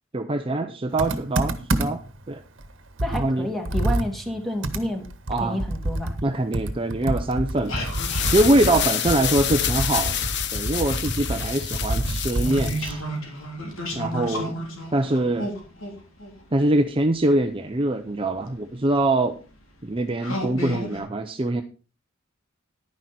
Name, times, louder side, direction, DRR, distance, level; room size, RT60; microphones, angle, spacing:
voice 1, 0.1-2.0 2.3-2.4 3.2-3.5 5.3-5.6 6.2-7.8 8.3-10.2 10.5-13.0 14.0-15.5 16.5-19.4 19.8-21.6, right 1 dB, 25° right, 6 dB, 0.7 m, -23 dB
Computer keyboard, 1.0-2.2 2.6-2.7 3.0-6.3 6.5-13.0, right 1 dB, 65° right, 1.4 m, -28 dB
voice 2, 3.0-5.0 5.4-6.2, left 1 dB, ahead, 3 dB, 2.4 m, -29 dB
sound 1, 7.5-10.3 10.6-17.4 18.3-18.4 19.0-19.3 19.8-19.9 20.2-21.0, equal, 75° left, 3.5 m, -33 dB
sound 2, 7.7-12.9, left 10 dB, 60° left, 1.0 m, -28 dB
11.0 x 10.5 x 4.3 m, 0.34 s
head